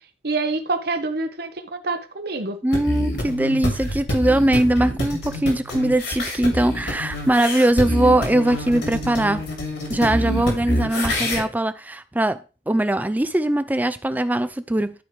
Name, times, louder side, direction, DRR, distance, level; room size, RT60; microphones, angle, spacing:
voice 1, 0.2-2.6, right 3 dB, 55° right, 1.1 m, -26 dB
voice 2, 2.6-9.4 9.9-12.4 12.7-14.9, right 1 dB, 10° right, 0.4 m, -21 dB
sound 1, 2.7-11.4, equal, 65° left, 2.7 m, -26 dB
12.5 x 4.7 x 3.3 m
head